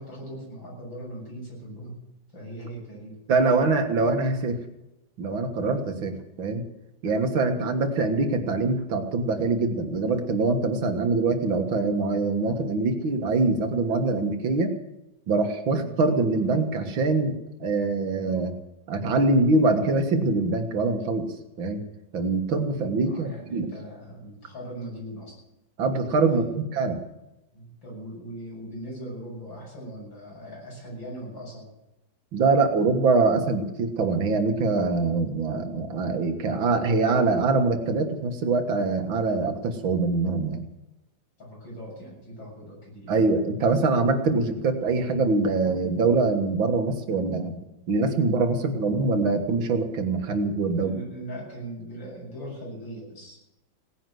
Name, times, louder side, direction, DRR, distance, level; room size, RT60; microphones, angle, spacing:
voice 1, 0.0-2.0 2.3-3.2 15.8-16.0 23.0-25.4 26.3-26.8 27.5-31.7 41.4-43.1 50.7-53.4, right 1 dB, 75° left, -3 dB, 8.1 m, -40 dB
voice 2, 3.3-4.6 5.2-6.6 7.0-14.7 15.3-18.6 18.9-21.8 22.1-23.7 25.8-27.0 32.3-40.6 43.1-47.6 47.9-50.9, right 3 dB, 85° right, 6 dB, 2.4 m, -24 dB
17.5 x 10.5 x 7.8 m, 0.93 s
omnidirectional pair, 2.1 m